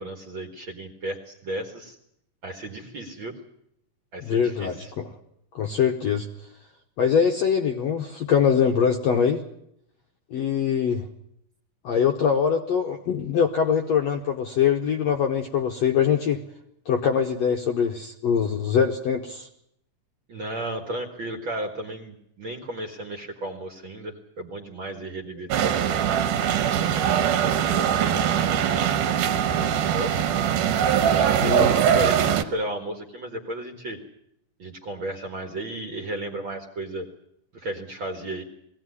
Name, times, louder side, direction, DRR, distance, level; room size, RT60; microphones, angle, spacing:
voice 1, 0.0-2.0 2.4-3.4 4.1-4.9 20.3-26.0 26.6-28.8 29.2-30.1 30.9-34.0 34.6-37.1 37.5-38.4, right 1 dB, 45° right, 4 dB, 1.8 m, -34 dB
voice 2, 4.2-5.1 5.6-6.3 7.0-9.4 10.3-11.1 11.8-16.4 16.9-19.5 31.4-31.7, left 7 dB, 65° left, 4 dB, 1.7 m, -23 dB
sound 1, 25.5-32.4, right 9 dB, 70° right, 2.4 m, -22 dB
21.0 x 16.5 x 9.7 m, 0.76 s
omnidirectional pair, 4.1 m